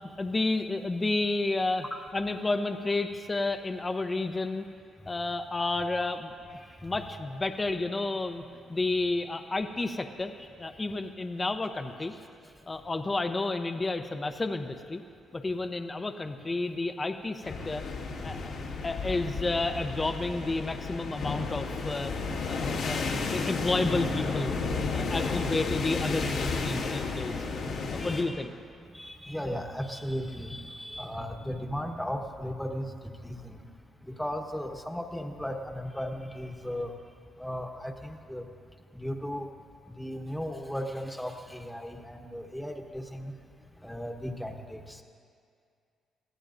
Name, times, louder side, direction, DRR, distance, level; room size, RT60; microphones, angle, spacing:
voice 1, 0.2-1.8 2.1-4.7 5.1-6.3 6.8-8.4 8.7-12.1 12.7-15.0 15.3-17.8 18.2-18.5 18.8-22.1 22.5-24.5 24.9-27.4 27.9-28.5, left 2 dB, 25° left, 6 dB, 0.8 m, -31 dB
sound 1, 17.4-28.2, left 4 dB, 80° left, 2.1 m, -32 dB
voice 2, 28.0-28.4 28.9-32.9 33.2-33.6 34.0-36.9 37.4-38.5 38.9-39.5 40.0-43.3 43.8-45.0, equal, 5° left, 3 dB, 1.3 m, -36 dB
23.5 x 15.5 x 2.6 m, 2.2 s
cardioid pair, 90°, 0 cm